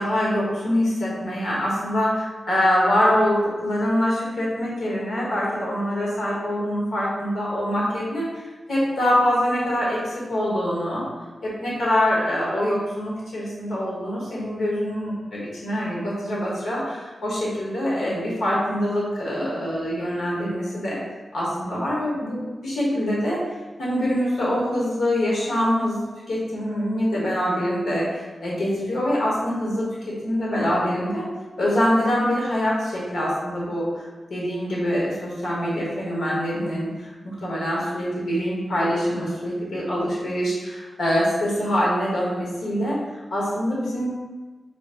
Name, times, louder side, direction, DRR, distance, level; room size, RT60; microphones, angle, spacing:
voice 1, 0.0-8.4 8.7-11.0 11.4-21.0 21.3-23.4 23.8-31.3 31.6-44.1, equal, 85° left, -6 dB, 1.2 m, -24 dB
3.0 x 2.5 x 4.2 m, 1.3 s
wide cardioid pair, 155°, 0 cm